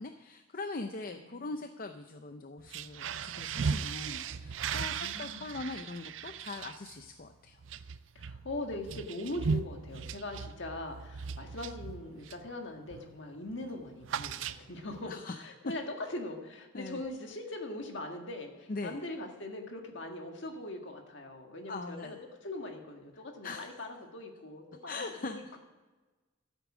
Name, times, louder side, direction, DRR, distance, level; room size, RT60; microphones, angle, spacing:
voice 1, 0.0-7.6 15.0-15.4 16.7-17.0 18.7-19.0 21.7-22.2 23.4-23.8 24.9-25.4, left 3 dB, 45° left, 7 dB, 0.6 m, -41 dB
voice 2, 1.1-1.5 4.7-5.6 8.1-25.6, left 2 dB, 65° left, 3 dB, 1.8 m, -41 dB
sound 1, 2.6-12.5 12.9-13.2 13.4-15.0, right 6 dB, 70° right, 0.5 m, -38 dB
13.0 x 8.3 x 6.1 m, 1.2 s
head